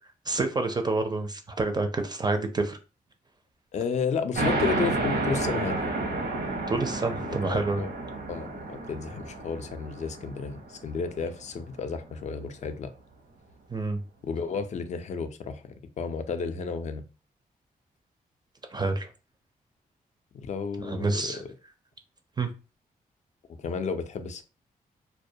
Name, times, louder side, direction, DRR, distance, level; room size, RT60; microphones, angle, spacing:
voice 1, 0.3-2.8 6.7-7.8 13.7-14.0 18.7-19.1 20.8-21.4 22.4-22.5, right 3 dB, 25° right, 0.4 m, -28 dB
voice 2, 3.7-5.9 7.2-7.9 8.3-12.9 14.2-17.0 20.3-21.3 23.6-24.4, left 5 dB, 45° left, 0.4 m, -32 dB
sound 1, 4.4-11.5, right 2 dB, 85° right, 0.8 m, -31 dB
2.2 x 2.1 x 2.6 m
cardioid pair, 70°, 16 cm